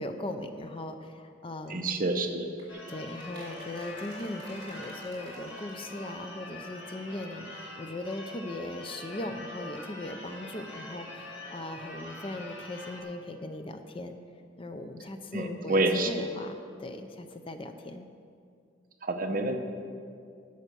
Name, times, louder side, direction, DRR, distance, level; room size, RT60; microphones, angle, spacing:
voice 1, 0.0-1.9 2.9-14.2 14.6-18.1, left 1 dB, 30° left, 7 dB, 0.5 m, -39 dB
voice 2, 1.7-2.5 15.3-16.2 19.0-19.6, right 2 dB, 45° right, 4 dB, 0.8 m, -28 dB
sound 1, 2.6-6.3 6.6-6.7 6.9-7.0 7.1-7.2, right 1 dB, 25° right, 2.8 m, -51 dB
Church bell / Car / Alarm, 2.7-13.0, left 1 dB, 70° left, 2.0 m, -44 dB
10.5 x 6.5 x 6.7 m, 2.3 s
head